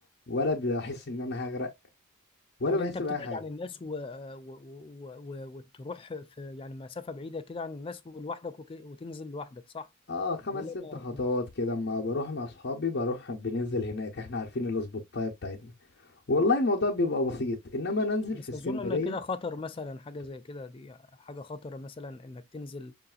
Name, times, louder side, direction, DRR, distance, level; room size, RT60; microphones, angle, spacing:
voice 1, 0.3-1.7 2.6-3.4 10.1-15.7 16.3-19.2, left 2 dB, 55° left, 0.7 m, -30 dB
voice 2, 2.7-9.9 10.5-11.2 18.3-22.9, left 3 dB, 25° left, 0.4 m, -39 dB
5.5 x 2.6 x 2.3 m
head